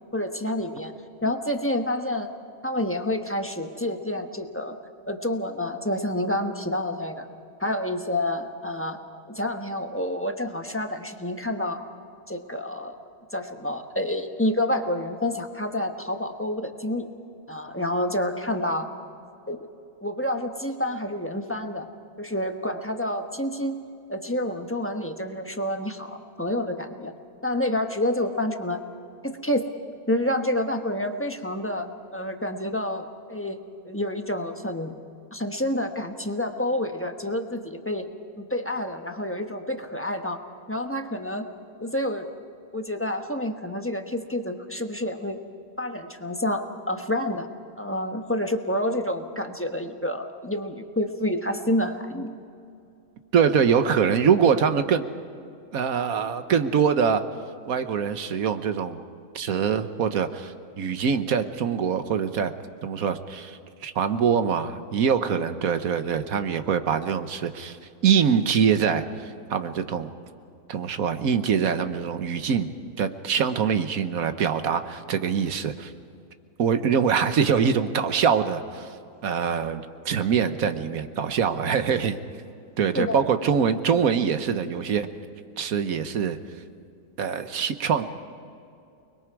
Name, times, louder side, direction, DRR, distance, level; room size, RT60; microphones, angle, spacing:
voice 1, 0.1-0.9 1.2-2.3 2.6-4.8 5.1-7.2 7.6-9.0 9.3-11.8 12.3-12.9 13.3-17.1 17.5-18.9 19.5-19.7 20.0-21.9 22.2-23.8 24.1-27.1 27.4-28.8 29.2-29.7 30.1-33.6 33.8-34.9 35.3-38.1 38.4-40.4 40.7-41.5 41.8-42.3 42.7-45.4 45.8-47.5 47.8-52.3 82.9-83.2, left 1 dB, 10° left, 5 dB, 1.0 m, -28 dB
voice 2, 53.3-55.1 55.7-57.2 57.7-59.0 59.3-62.5 62.8-67.8 68.0-70.1 70.7-72.7 73.0-75.9 76.6-78.9 79.2-82.2 82.8-85.1 85.6-86.4 87.2-88.0, right 7 dB, 70° right, 9 dB, 1.4 m, -24 dB
29.5 x 21.5 x 4.8 m, 2.5 s
omnidirectional pair, 1.6 m